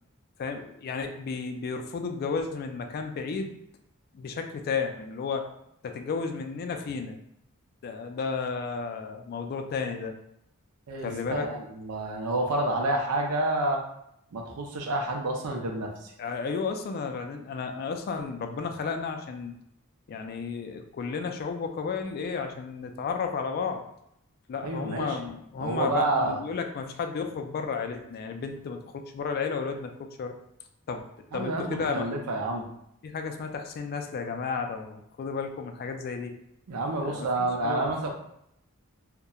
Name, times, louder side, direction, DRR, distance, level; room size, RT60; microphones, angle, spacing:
voice 1, 0.4-3.5 4.1-5.5 5.8-7.2 7.8-10.1 11.0-11.5 16.2-19.6 20.1-23.8 24.5-30.4 30.9-32.1 33.0-36.4 37.0-37.8, left 5 dB, 45° left, 5 dB, 0.3 m, -33 dB
voice 2, 10.9-13.8 14.3-16.1 24.6-25.2 25.6-26.4 31.3-32.7 36.7-38.1, right 2 dB, 80° right, 1 dB, 0.5 m, -29 dB
2.7 x 2.1 x 2.3 m, 0.75 s
head